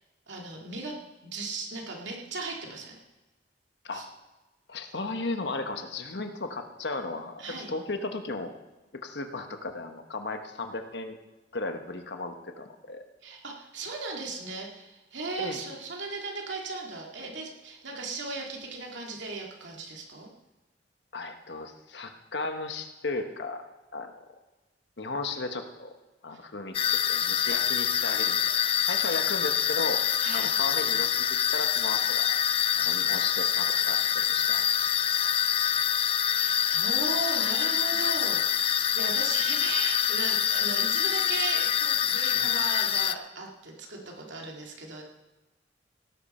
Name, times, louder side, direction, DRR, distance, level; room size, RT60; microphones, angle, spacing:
voice 1, 0.3-1.0 1.2-3.0 3.9-4.0 7.4-7.7 13.2-20.3 30.2-30.5 36.3-45.0, right 3 dB, 85° right, -1 dB, 2.4 m, -37 dB
voice 2, 4.7-8.5 9.0-11.2 11.5-13.0 15.4-15.6 21.1-23.6 23.9-24.1 25.0-25.9 26.2-28.4 28.9-30.0 30.3-32.3 32.7-34.7 35.2-35.3 39.0-39.1 42.3-42.5, left 3 dB, 70° left, 6 dB, 1.2 m, -35 dB
sound 1, 26.7-43.1, left 9 dB, 30° left, 0.4 m, -26 dB
17.5 x 10.5 x 4.4 m, 1.1 s
head